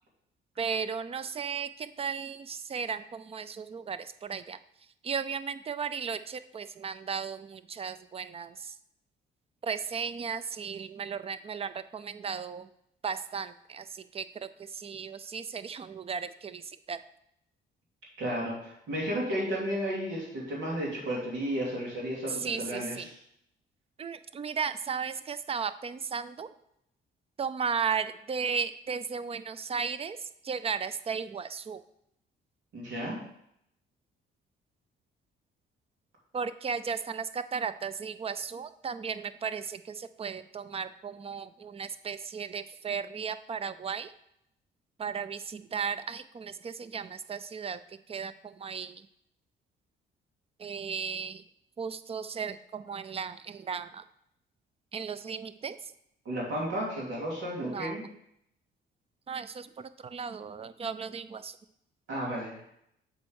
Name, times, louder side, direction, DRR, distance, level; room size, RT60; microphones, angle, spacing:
voice 1, 0.6-4.6 5.0-8.8 9.6-12.7 13.0-17.0 22.3-23.1 24.0-26.5 27.4-31.8 36.3-44.1 45.0-47.8 48.1-49.1 50.6-51.4 51.8-54.0 54.9-55.8 57.6-58.0 59.3-61.6, right 6 dB, 30° right, 13 dB, 0.4 m, -35 dB
voice 2, 18.2-23.1 32.7-33.2 56.2-58.0 62.1-62.6, equal, 85° right, -4 dB, 2.8 m, -33 dB
7.5 x 4.4 x 4.7 m, 0.76 s
cardioid pair, 90°, 20 cm